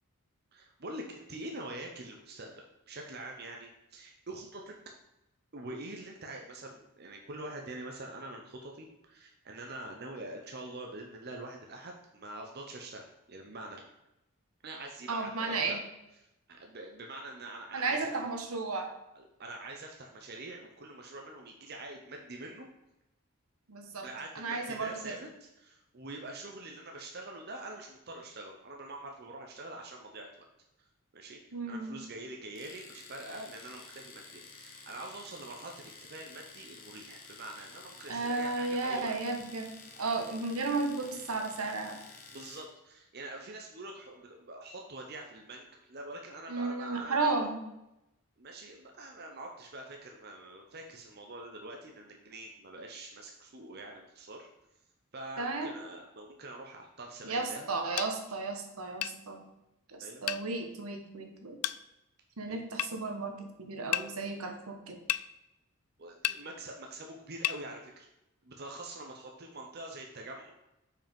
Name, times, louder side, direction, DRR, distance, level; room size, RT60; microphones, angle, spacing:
voice 1, 0.5-4.7 5.5-13.8 14.6-15.8 16.5-18.2 19.1-22.7 24.0-25.3 25.6-30.3 31.1-31.4 31.7-39.1 42.3-47.4 48.4-54.5 55.1-57.7 60.0-60.2 62.5-62.6 66.0-68.1 68.4-70.5, right 2 dB, 45° right, 1 dB, 0.8 m, -45 dB
voice 2, 15.1-15.8 17.7-18.9 23.7-24.1 24.3-25.1 31.5-32.0 38.1-39.7 40.0-42.0 46.5-47.6 55.4-55.7 57.2-59.5 59.9-61.6 62.4-65.0, right 3 dB, 75° right, 4 dB, 1.2 m, -34 dB
Domestic sounds home sounds, 32.6-42.7, left 4 dB, 40° left, 0.9 m, -51 dB
sound 1, 58.0-58.1 59.0-59.2 60.3-60.4 61.6-61.8 62.8-62.9 63.9-64.1 65.1-65.3 66.2-66.4 67.4-67.6, left 14 dB, 90° left, 0.3 m, -31 dB
5.9 x 4.9 x 5.2 m, 0.89 s
head